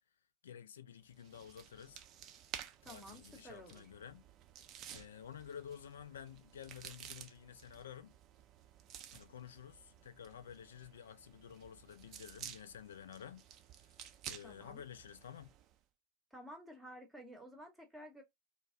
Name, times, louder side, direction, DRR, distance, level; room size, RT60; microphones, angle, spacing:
voice 1, 0.4-2.0 2.8-4.2 4.9-8.2 9.1-13.5 13.9-15.5, left 8 dB, 65° left, 0.3 m, -51 dB
sound 1, 1.1-15.8, right 10 dB, 35° right, 0.4 m, -53 dB
voice 2, 2.8-3.9 14.4-14.8 16.3-18.2, equal, 5° right, 0.8 m, -52 dB
2.3 x 2.0 x 3.6 m
figure-of-eight pair, 90°, 0 cm